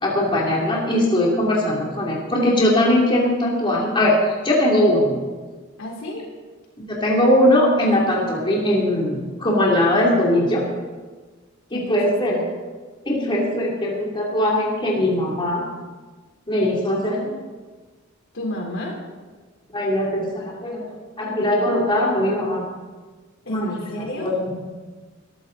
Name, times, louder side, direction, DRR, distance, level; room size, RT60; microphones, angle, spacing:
voice 1, 0.0-4.2 4.4-5.2 6.9-10.6 11.7-12.4 13.1-15.6 16.5-17.3 19.7-20.8 21.2-22.6 23.5-23.7 24.2-24.6, left 1 dB, 25° left, -4 dB, 2.9 m, -20 dB
voice 2, 5.8-6.3 11.7-12.4 18.3-19.0 23.5-24.4, left 1 dB, 65° left, 0 dB, 3.8 m, -31 dB
20.5 x 13.5 x 4.0 m, 1.4 s
head